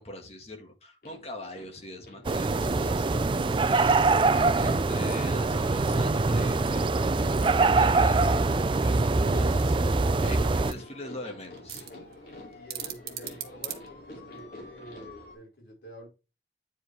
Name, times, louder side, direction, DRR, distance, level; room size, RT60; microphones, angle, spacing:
voice 1, 0.0-3.1 3.6-11.9, left 1 dB, 35° left, 4 dB, 1.7 m, -43 dB
sound 1, 1.0-15.3, left 2 dB, 55° left, 2.6 m, -47 dB
sound 2, 2.2-10.7, right 3 dB, 30° right, 0.4 m, -24 dB
voice 2, 10.3-10.6 12.5-16.1, equal, 75° left, -2 dB, 4.8 m, -48 dB
sound 3, 10.7-14.5, right 11 dB, 55° right, 1.3 m, -42 dB
9.2 x 4.9 x 3.3 m, 0.29 s
head